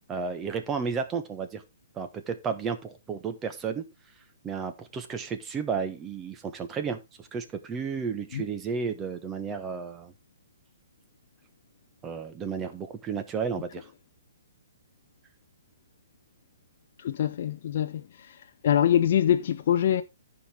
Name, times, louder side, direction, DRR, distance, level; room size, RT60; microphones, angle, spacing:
voice 1, 0.1-1.6 1.9-3.8 4.4-10.1 12.0-13.9, right 6 dB, 20° right, 1.3 m, -32 dB
voice 2, 17.0-18.4 18.6-20.0, left 10 dB, 55° left, 0.6 m, -24 dB
14.0 x 5.0 x 3.5 m
hypercardioid pair, 130°, 0 cm